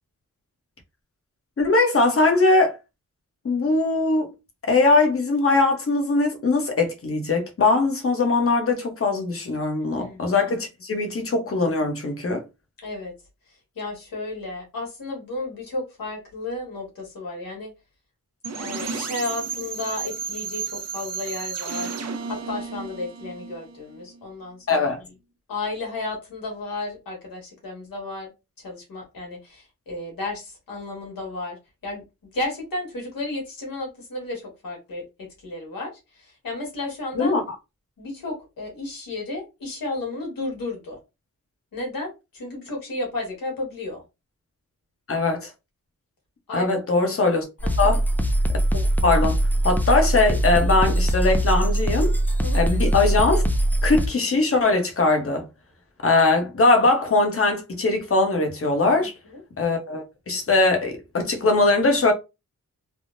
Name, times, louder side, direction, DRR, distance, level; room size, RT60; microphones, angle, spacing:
voice 1, 1.6-2.8 3.4-4.3 4.7-12.4 24.7-25.0 37.2-37.4 45.1-45.5 46.5-47.4 47.8-48.0 48.7-49.4 49.6-52.1 52.5-53.4 53.8-55.5 56.0-59.1 59.6-62.1, left 3 dB, 40° left, 0.9 m, -21 dB
voice 2, 12.8-13.1 13.7-17.7 18.6-21.9 22.3-24.9 25.5-28.3 28.6-31.6 31.8-32.0 32.3-35.0 35.4-35.9 36.4-37.3 38.0-41.0 41.7-44.0 46.5-46.7 47.6-48.0 52.4-52.6 59.0-59.1, left 2 dB, 90° left, 1.6 m, -33 dB
sound 1, 18.4-24.2, right 5 dB, 50° right, 0.5 m, -33 dB
sound 2, 47.6-54.1, right 1 dB, 5° left, 0.3 m, -21 dB
3.4 x 2.1 x 2.5 m
wide cardioid pair, 120°, 33 cm